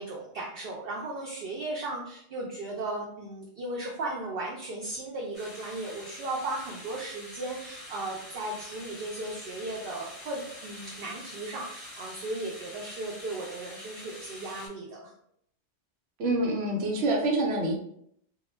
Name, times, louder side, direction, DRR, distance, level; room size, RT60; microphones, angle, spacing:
voice 1, 0.0-15.1, right 2 dB, 65° right, -3 dB, 0.7 m, -36 dB
sound 1, 5.3-14.7, left 1 dB, 10° right, 0.6 m, -45 dB
voice 2, 16.2-17.7, right 2 dB, 90° right, 0 dB, 0.9 m, -26 dB
2.2 x 2.1 x 3.1 m, 0.69 s
omnidirectional pair, 1.2 m